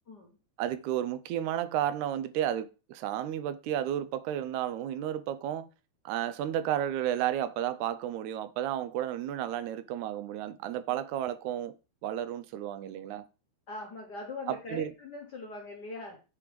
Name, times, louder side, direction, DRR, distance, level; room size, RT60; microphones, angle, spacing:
voice 1, 0.1-0.4 10.9-11.0 13.7-16.2, left 2 dB, 50° left, 1.2 m, -42 dB
voice 2, 0.6-5.7 6.1-11.7 12.0-13.3 14.5-14.9, right 11 dB, 85° right, 1.9 m, -32 dB
8.5 x 3.1 x 5.1 m
omnidirectional pair, 3.4 m